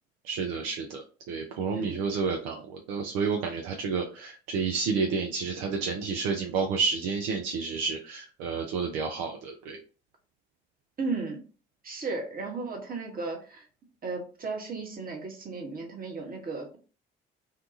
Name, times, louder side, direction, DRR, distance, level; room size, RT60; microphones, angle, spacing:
voice 1, 0.2-9.8, right 5 dB, 60° right, 2 dB, 0.5 m, -30 dB
voice 2, 11.0-11.4 11.8-13.6 14.0-16.8, right 3 dB, 30° right, 1 dB, 1.0 m, -35 dB
2.7 x 2.2 x 2.5 m, 0.37 s
figure-of-eight pair, 50°, 29 cm